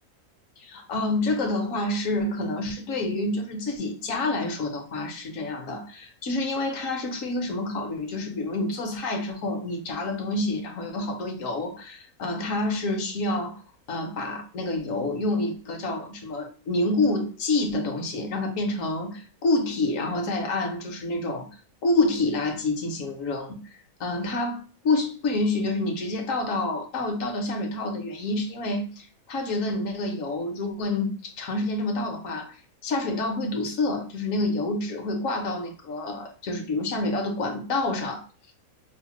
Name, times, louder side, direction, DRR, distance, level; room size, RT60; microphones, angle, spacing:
voice 1, 0.6-13.6 13.9-21.5 21.8-23.6 24.0-32.6 32.8-38.2, left 2 dB, 70° left, 4 dB, 1.1 m, -28 dB
4.9 x 2.1 x 2.9 m, 0.40 s
omnidirectional pair, 1.5 m